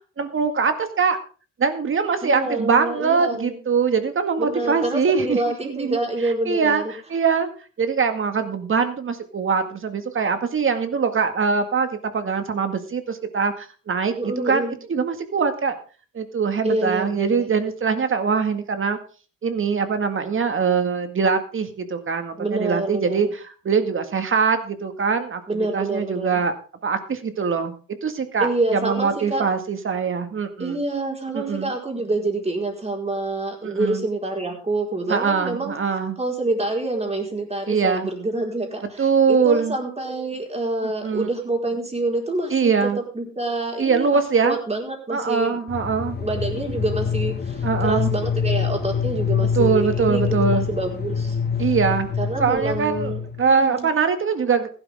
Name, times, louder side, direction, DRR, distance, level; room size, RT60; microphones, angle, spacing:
voice 1, 0.2-1.2 1.6-5.4 5.7-7.5 7.8-11.9 12.1-15.8 16.1-19.0 19.4-23.3 23.7-26.5 26.8-27.7 28.0-30.8 31.3-31.7 33.6-34.0 35.1-36.2 37.7-38.1 39.0-39.8 40.8-41.3 42.5-43.0 43.8-44.6 45.1-46.2 47.6-48.1 49.5-50.7 51.6-52.1 52.4-53.1 53.4-54.7, right 5 dB, 40° right, 8 dB, 2.0 m, -22 dB
voice 2, 2.2-3.6 4.4-6.9 14.2-14.8 16.6-17.5 22.4-23.3 25.5-26.4 28.4-29.5 30.6-35.8 36.2-42.9 43.1-45.6 46.2-51.4 52.2-53.9, right 2 dB, 20° right, 1 dB, 4.6 m, -27 dB
sound 1, 45.7-53.5, left 6 dB, 35° left, 1.3 m, -25 dB
15.5 x 12.0 x 3.7 m, 0.37 s
cardioid pair, 90°, 30 cm